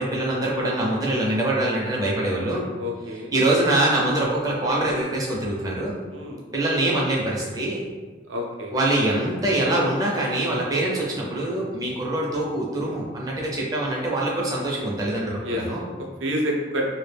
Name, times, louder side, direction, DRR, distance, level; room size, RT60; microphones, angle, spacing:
voice 1, 0.0-2.7 3.3-6.0 6.5-7.8 8.7-15.8, right 1 dB, 20° right, -3 dB, 0.4 m, -24 dB
voice 2, 2.8-3.3 6.1-6.4 8.3-8.7 15.4-16.8, equal, 80° right, 0 dB, 0.5 m, -29 dB
2.2 x 2.0 x 3.2 m, 1.4 s
head